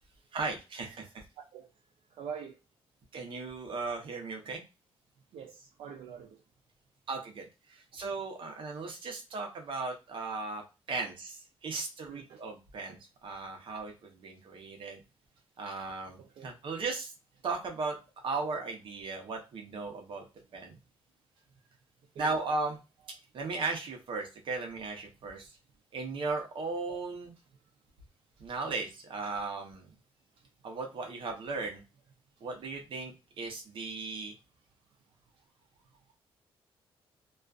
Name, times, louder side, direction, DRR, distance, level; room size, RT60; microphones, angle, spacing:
voice 1, 0.3-1.2 3.1-4.6 7.1-10.6 10.9-15.0 15.6-17.1 17.4-18.0 18.2-20.2 20.5-20.8 22.2-22.8 23.1-25.6 25.9-27.3 28.4-29.9 30.6-31.8 32.4-34.3, right 3 dB, 60° right, 0.8 m, -36 dB
voice 2, 2.2-2.6 5.3-6.4 12.1-12.4 16.2-16.5 22.2-22.3, right 7 dB, 80° right, 0.4 m, -44 dB
2.3 x 2.3 x 2.3 m
cardioid pair, 130°, 10 cm